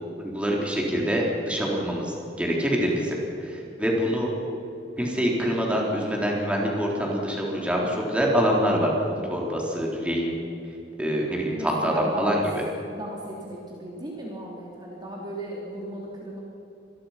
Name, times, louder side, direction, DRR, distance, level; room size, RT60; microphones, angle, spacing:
voice 1, 0.2-3.2 3.4-4.3 5.0-10.4 11.0-12.4, equal, 5° right, -2 dB, 3.9 m, -25 dB
voice 2, 11.5-12.4 12.9-16.4, right 1 dB, 25° right, -3 dB, 3.2 m, -36 dB
26.0 x 21.0 x 5.9 m, 3.0 s
head